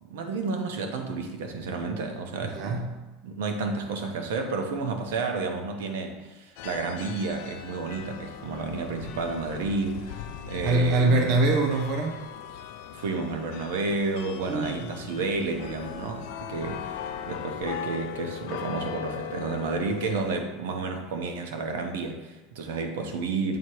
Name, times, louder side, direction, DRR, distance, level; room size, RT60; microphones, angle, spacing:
voice 1, 0.0-2.9 3.2-11.3 12.9-23.6, right 3 dB, 90° right, 4 dB, 0.9 m, -31 dB
voice 2, 2.4-2.9 10.6-12.3 14.5-15.1, right 2 dB, 40° right, 2 dB, 0.6 m, -24 dB
sound 1, 6.6-20.4, left 9 dB, 55° left, 0.4 m, -39 dB
7.4 x 2.9 x 4.7 m, 1.1 s
supercardioid pair, 170°, 0 cm